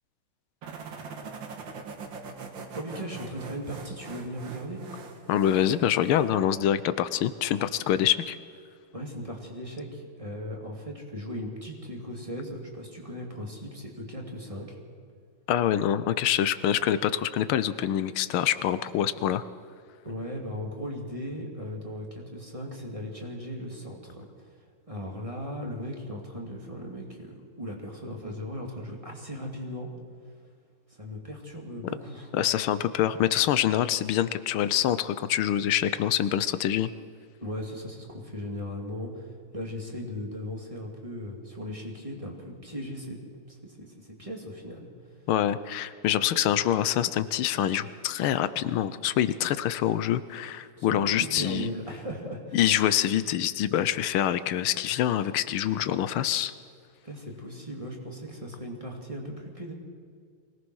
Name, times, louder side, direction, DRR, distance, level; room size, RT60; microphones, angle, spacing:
sound 1, 0.6-6.4, right 4 dB, 65° right, 2.3 m, -42 dB
voice 1, 2.7-4.8 8.9-14.8 20.0-29.9 30.9-32.3 37.4-43.2 43.5-44.9 50.8-52.6 57.0-59.7, equal, 15° right, 0 dB, 2.7 m, -37 dB
voice 2, 5.3-8.4 15.5-19.4 32.3-36.9 45.3-51.7 52.5-56.5, left 11 dB, 90° left, 14 dB, 1.6 m, -25 dB
23.5 x 18.0 x 6.3 m, 2.2 s
omnidirectional pair, 2.3 m